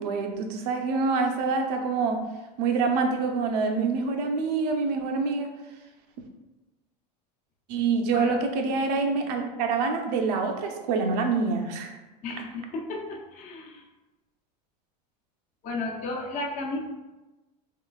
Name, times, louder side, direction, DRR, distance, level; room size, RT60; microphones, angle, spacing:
voice 1, 0.0-2.2 2.6-5.5 7.7-12.0, right 4 dB, 75° right, 4 dB, 0.6 m, -26 dB
voice 2, 12.2-13.8 15.6-16.8, left 2 dB, 35° left, -1 dB, 0.6 m, -33 dB
3.7 x 3.1 x 2.3 m, 1.1 s
supercardioid pair, 120°, 21 cm